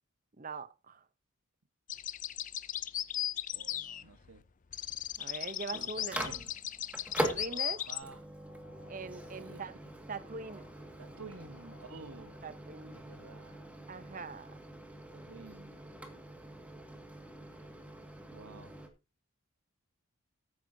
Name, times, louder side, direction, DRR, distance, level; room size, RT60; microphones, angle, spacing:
voice 1, 0.4-1.0 5.2-6.3 7.2-7.8 8.9-9.7 10.1-10.7 12.4-13.0 13.9-14.5, right 4 dB, 40° right, 0.7 m, -42 dB
sound 1, 1.9-4.4 4.7-8.0, left 12 dB, 35° left, 0.4 m, -37 dB
voice 2, 3.5-4.4 5.7-6.5 7.5-8.2 9.4-9.7 11.0-12.5 12.9-13.7 15.1-15.8 18.3-18.8, right 4 dB, 80° right, 1.2 m, -51 dB
Microwave oven, 5.2-18.9, right 1 dB, 5° right, 1.9 m, -43 dB
sound 2, 7.2-12.6, left 2 dB, 85° left, 5.4 m, -63 dB
15.5 x 9.1 x 2.7 m
head